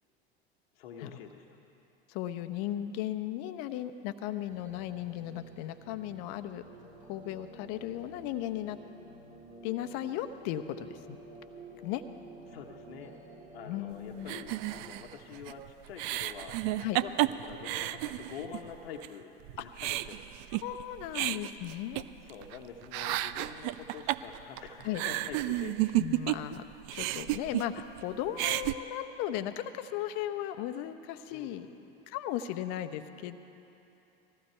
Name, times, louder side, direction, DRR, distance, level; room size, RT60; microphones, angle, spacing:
voice 1, 0.7-1.4 12.5-13.2 13.5-20.2 22.2-26.0 31.3-31.8, left 6 dB, 70° left, 1 dB, 1.2 m, -46 dB
voice 2, 2.1-6.6 7.1-8.8 9.6-11.2 11.8-12.0 13.6-14.3 16.8-17.0 19.6-19.7 20.5-22.0 24.8-25.0 26.0-26.6 26.9-31.7 32.1-33.4, left 12 dB, 50° left, 10 dB, 0.9 m, -36 dB
sound 1, 4.5-14.8, right 2 dB, 25° right, 2.4 m, -51 dB
sound 2, 14.3-18.7 19.0-19.1 19.5-22.6 22.8-26.6 26.8-28.0 28.3-28.7, right 16 dB, 50° right, 0.5 m, -32 dB
20.0 x 14.5 x 4.5 m, 2.9 s
hypercardioid pair, 85°, 31 cm